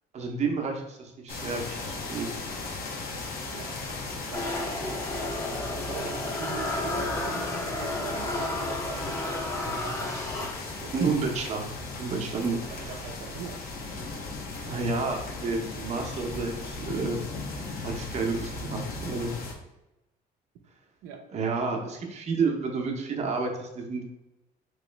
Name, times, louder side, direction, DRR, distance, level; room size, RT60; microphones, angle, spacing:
voice 1, 0.1-2.4 10.9-11.6 12.0-12.5 14.7-19.4 21.3-24.0, right 4 dB, 40° right, 2 dB, 0.7 m, -30 dB
sound 1, 1.3-19.5, left 3 dB, 60° left, 0.8 m, -37 dB
voice 2, 4.2-5.0 5.9-10.3 10.8-10.9 12.5-14.1 21.0-21.2, right 7 dB, 80° right, 2 dB, 0.5 m, -43 dB
sound 2, 4.3-11.0, left 1 dB, 15° left, 0.6 m, -32 dB
3.0 x 2.9 x 3.2 m, 0.93 s
cardioid pair, 110°, 17 cm